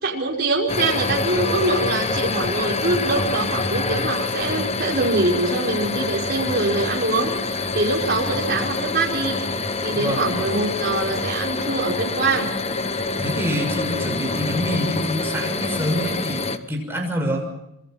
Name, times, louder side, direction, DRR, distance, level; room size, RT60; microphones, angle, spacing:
voice 1, 0.0-9.4 9.8-12.5, right 2 dB, 50° right, -2 dB, 5.3 m, -24 dB
sound 1, 0.7-16.6, left 3 dB, 30° left, 1.2 m, -26 dB
voice 2, 9.9-10.3 13.2-17.5, equal, 10° right, 1 dB, 6.5 m, -26 dB
27.0 x 24.5 x 5.9 m, 0.86 s
head